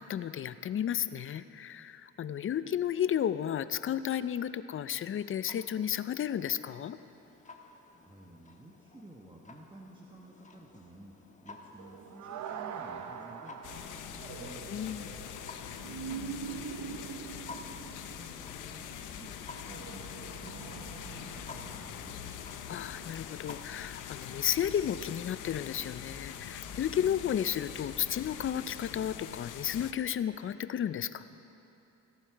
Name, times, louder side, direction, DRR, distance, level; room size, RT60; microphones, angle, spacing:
voice 1, 0.0-7.0 14.7-15.1 22.7-31.2, left 9 dB, 45° left, 14 dB, 0.5 m, -33 dB
Clock, 5.4-24.0, left 3 dB, 25° left, 1.3 m, -53 dB
voice 2, 8.0-14.6 15.8-17.1 17.4-22.4, right 1 dB, 15° right, -1 dB, 1.1 m, -53 dB
sound 1, 11.8-22.8 23.5-23.6, right 7 dB, 70° right, 0.8 m, -44 dB
sound 2, 13.6-29.9, left 9 dB, 85° left, 0.8 m, -43 dB
17.5 x 11.5 x 4.6 m, 2.9 s
cardioid pair, 90°, 30 cm